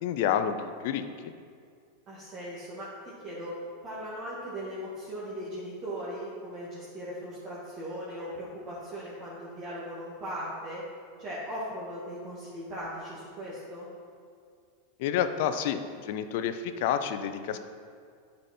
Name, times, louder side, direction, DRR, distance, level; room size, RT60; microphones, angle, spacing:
voice 1, 0.0-1.3 15.0-17.6, left 9 dB, 65° left, 10 dB, 0.5 m, -29 dB
voice 2, 2.1-2.9 3.2-3.5 3.8-10.8 11.2-13.9, equal, 40° right, -8 dB, 2.0 m, -38 dB
8.9 x 5.4 x 4.4 m, 2.2 s
hypercardioid pair, 115°, 0 cm